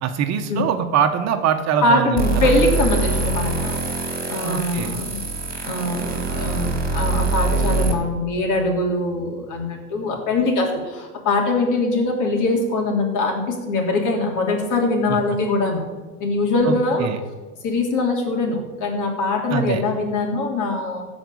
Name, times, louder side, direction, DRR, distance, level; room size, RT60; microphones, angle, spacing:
voice 1, 0.0-2.5 4.4-5.0 15.1-15.2 16.6-16.7 17.0-17.2 19.5-19.8, right 8 dB, 40° right, 7 dB, 1.2 m, -23 dB
voice 2, 1.8-3.8 4.3-5.2 5.6-15.9 16.2-17.1 17.6-21.1, left 2 dB, 45° left, 2 dB, 3.6 m, -22 dB
sound 1, 2.2-7.9, right 3 dB, 20° right, 3.3 m, -24 dB
15.0 x 5.3 x 8.6 m, 1.3 s
hypercardioid pair, 90°, 42 cm